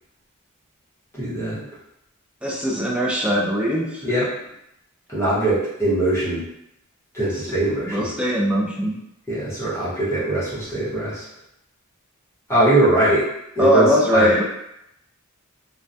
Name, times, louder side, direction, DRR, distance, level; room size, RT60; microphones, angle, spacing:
voice 1, 1.1-1.7 4.0-4.3 5.1-6.4 7.1-8.1 9.3-11.2 12.5-13.3 13.5-14.3, right 1 dB, 10° left, -11 dB, 0.9 m, -21 dB
voice 2, 2.4-4.0 7.8-9.0 13.6-14.4, equal, 5° right, -3 dB, 0.4 m, -20 dB
2.2 x 2.2 x 2.6 m, 0.81 s
head